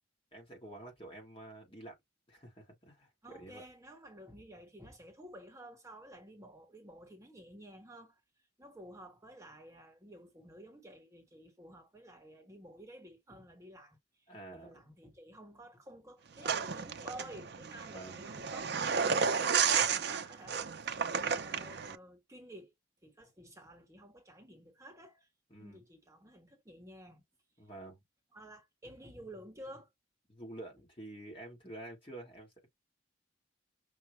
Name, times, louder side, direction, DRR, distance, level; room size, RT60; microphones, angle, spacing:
voice 1, 0.3-2.0 2.3-3.6 14.3-14.8 17.9-18.2 25.5-25.8 27.6-28.0 30.3-32.5, right 2 dB, 30° left, 1.5 m, -49 dB
voice 2, 3.2-8.2 8.6-22.7 23.0-25.3 25.6-27.2 28.3-29.9, right 1 dB, 15° right, 1.0 m, -52 dB
sound 1, 16.4-22.0, right 6 dB, 55° right, 0.5 m, -32 dB
5.8 x 2.1 x 3.1 m
head